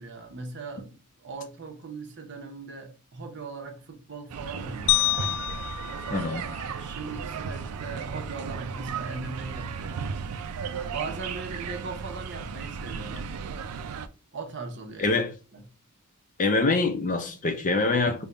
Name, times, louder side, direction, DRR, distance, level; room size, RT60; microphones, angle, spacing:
voice 1, 0.0-5.2 6.0-10.1 10.9-13.4 14.3-15.2 15.5-15.6, right 3 dB, 55° right, 0.8 m, -39 dB
sound 1, 4.3-14.1, right 6 dB, 85° right, 0.4 m, -35 dB
sound 2, 4.9-7.2, left 14 dB, 85° left, 0.3 m, -28 dB
voice 2, 6.1-6.4 15.0-15.3 16.4-18.3, left 3 dB, 35° left, 0.6 m, -24 dB
3.6 x 2.2 x 3.9 m
head